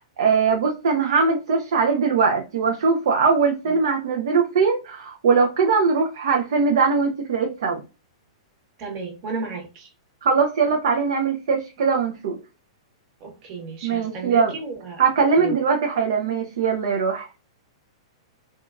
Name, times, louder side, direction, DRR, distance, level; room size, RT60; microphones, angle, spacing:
voice 1, 0.0-7.8 10.2-12.4 13.8-14.5 15.0-17.3, right 5 dB, 60° right, 0.5 m, -21 dB
voice 2, 8.8-9.9 13.2-15.0 15.4-15.6, right 4 dB, 40° right, 1.0 m, -33 dB
2.7 x 2.3 x 2.3 m
figure-of-eight pair, 105°, 3 cm